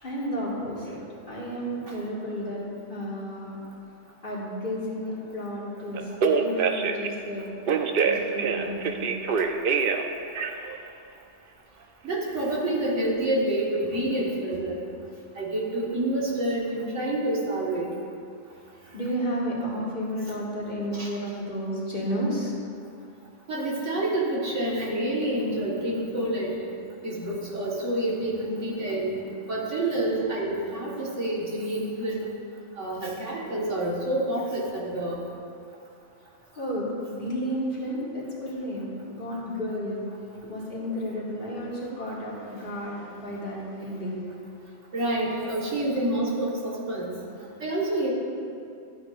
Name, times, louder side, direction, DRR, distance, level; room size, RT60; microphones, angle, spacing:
voice 1, 0.0-1.0 1.3-2.6 2.9-3.6 4.2-7.5 8.0-9.2 18.9-22.5 36.5-40.0 40.4-44.2, equal, 45° left, -7 dB, 2.2 m, -32 dB
Telephone, 5.9-7.1 7.7-10.0 10.3-10.8, right 5 dB, 60° right, 0.7 m, -24 dB
voice 2, 12.0-14.8 15.3-17.9 20.9-21.1 23.5-26.6 27.0-29.2 29.5-32.3 32.8-35.2 44.9-47.2 47.6-48.1, right 1 dB, 80° right, -5 dB, 2.0 m, -28 dB
13.0 x 8.8 x 2.6 m, 2.5 s
omnidirectional pair, 1.2 m